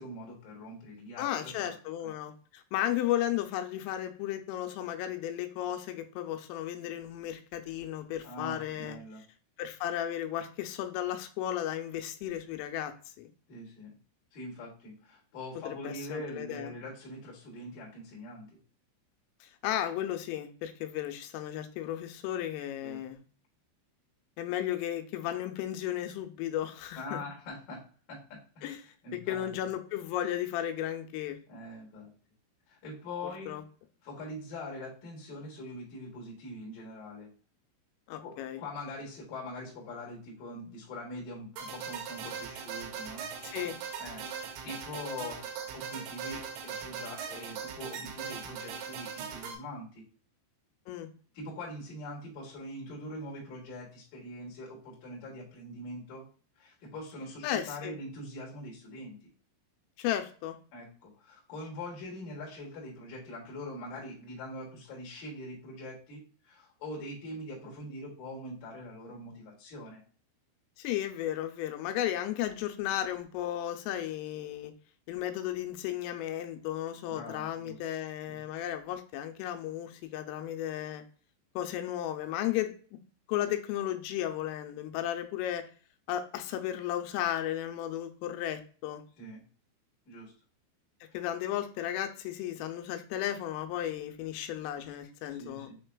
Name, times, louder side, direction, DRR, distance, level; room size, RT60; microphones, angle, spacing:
voice 1, 0.0-1.7 2.0-2.1 8.2-9.2 13.5-13.9 14.3-18.6 22.8-23.0 27.0-28.7 29.0-29.5 31.5-32.1 32.7-33.6 34.0-37.3 38.2-43.3 44.0-50.1 51.3-56.2 56.6-59.2 60.7-70.0 77.1-77.8 78.3-78.4 89.2-89.4 90.1-90.3 95.3-95.8, left 1 dB, 55° left, -3 dB, 2.7 m, -43 dB
voice 2, 1.2-9.0 9.6-13.3 15.7-16.7 19.4-23.2 24.4-27.2 28.6-28.8 29.1-31.4 33.5-33.6 38.1-38.6 43.4-43.8 50.9-51.1 57.4-57.9 60.0-60.6 70.8-74.7 75.1-81.0 81.6-83.0 83.3-85.7 86.1-89.0 91.1-95.7, left 12 dB, 90° left, 6 dB, 3.2 m, -34 dB
sound 1, 41.6-49.6, right 6 dB, 80° right, 2.8 m, -40 dB
7.2 x 3.2 x 2.2 m, 0.41 s
omnidirectional pair, 5.6 m